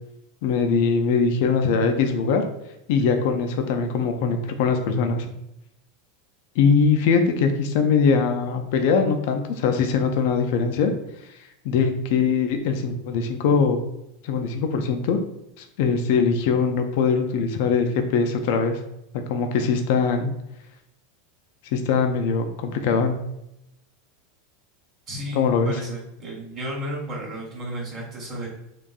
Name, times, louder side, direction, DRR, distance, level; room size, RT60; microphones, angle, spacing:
voice 1, 0.4-2.4 2.9-5.3 6.6-10.9 11.6-13.8 14.2-15.2 15.6-18.8 19.3-20.3 21.7-23.1 25.3-25.7, left 5 dB, 55° left, 6 dB, 0.3 m, -22 dB
voice 2, 25.1-28.5, equal, 30° right, -7 dB, 0.9 m, -33 dB
3.7 x 2.6 x 2.3 m, 0.84 s
figure-of-eight pair, 85°, 0 cm